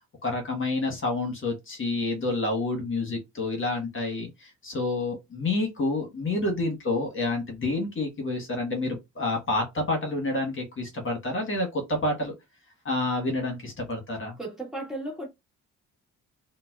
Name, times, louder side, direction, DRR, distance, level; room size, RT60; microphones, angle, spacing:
voice 1, 0.2-12.3 12.8-14.4, left 2 dB, 40° left, 1.3 m, -28 dB
voice 2, 14.4-15.3, right 1 dB, ahead, 1.5 m, -35 dB
3.8 x 2.2 x 2.4 m
cardioid pair, 90°, 30 cm